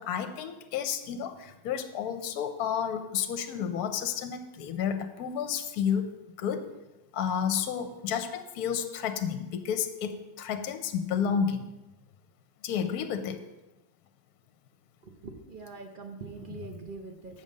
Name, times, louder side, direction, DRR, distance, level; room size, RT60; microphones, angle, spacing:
voice 1, 0.0-6.1 6.4-6.7 7.1-11.7 12.6-13.4 16.4-16.7, left 8 dB, 65° left, 8 dB, 1.1 m, -31 dB
voice 2, 15.2-17.4, right 4 dB, 70° right, 3 dB, 0.5 m, -43 dB
7.3 x 5.4 x 6.4 m, 1.0 s
omnidirectional pair, 1.9 m